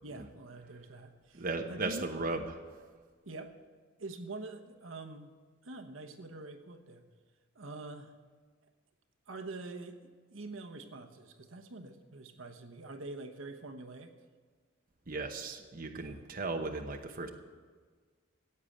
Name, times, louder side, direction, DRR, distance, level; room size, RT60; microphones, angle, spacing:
voice 1, 0.0-2.1 3.2-3.5 4.0-5.3 5.6-7.0 7.5-8.1 9.3-14.1 16.0-16.2, right 2 dB, 75° right, 5 dB, 1.1 m, -45 dB
voice 2, 1.3-2.6 15.1-17.3, right 3 dB, 45° right, 3 dB, 1.0 m, -36 dB
15.5 x 8.6 x 7.8 m, 1.5 s
head